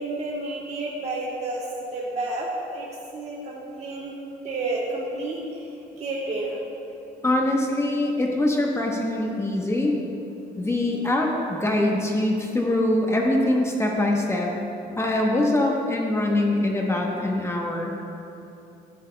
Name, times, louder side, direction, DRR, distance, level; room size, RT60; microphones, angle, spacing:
voice 1, 0.0-1.6 1.9-2.9 3.1-4.1 4.4-5.7 6.0-6.6, right 2 dB, 40° right, -4 dB, 1.3 m, -30 dB
voice 2, 7.2-9.9 10.6-14.5 15.0-17.9, left 1 dB, 15° left, -1 dB, 1.1 m, -23 dB
16.0 x 7.7 x 2.3 m, 2.8 s
cardioid pair, 110°, 17 cm